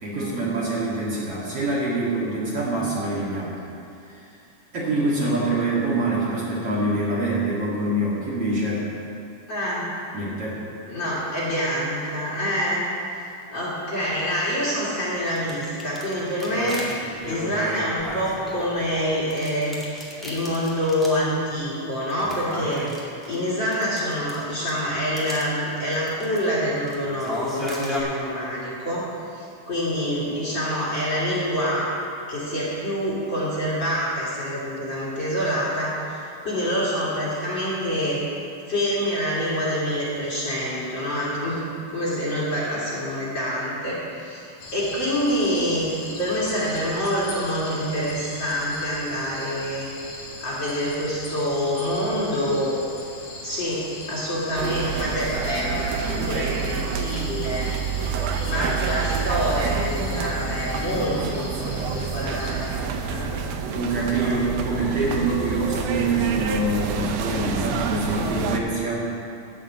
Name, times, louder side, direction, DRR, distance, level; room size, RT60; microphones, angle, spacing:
voice 1, 0.0-3.5 4.0-4.2 4.7-8.9 10.1-10.6 63.7-69.1, right 2 dB, 50° right, -7 dB, 2.7 m, -25 dB
voice 2, 9.5-9.9 10.9-12.8 13.5-16.8 17.2-19.8 20.2-22.8 23.3-31.9 32.3-38.2 38.7-41.6 41.9-49.9 50.4-52.8 53.4-57.7 58.4-63.4, equal, 40° left, -8 dB, 2.7 m, -26 dB
sound 1, 15.2-18.9 19.3-21.3 21.5-21.6 22.1-24.8 25.2-25.4 25.9-26.4 26.8-28.0, equal, ahead, 1.1 m, -34 dB
sound 2, 44.6-62.7, left 2 dB, 60° left, 2.4 m, -39 dB
sound 3, 54.6-68.6, right 5 dB, 80° right, 1.4 m, -28 dB
13.0 x 5.1 x 8.7 m, 2.5 s
omnidirectional pair, 3.7 m